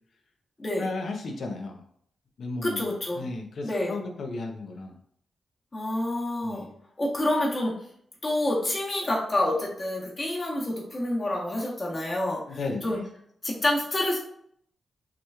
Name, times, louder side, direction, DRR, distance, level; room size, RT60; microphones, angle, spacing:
voice 1, 0.8-1.8 2.4-4.9 6.4-6.7 12.5-12.9, left 3 dB, 70° left, 3 dB, 0.8 m, -34 dB
voice 2, 2.6-3.2 3.6-3.9 5.7-6.7 7.0-7.8 8.2-13.0 13.4-14.2, left 1 dB, 35° left, -3 dB, 1.2 m, -28 dB
5.9 x 3.1 x 2.4 m, 0.66 s
cardioid pair, 70°, 0 cm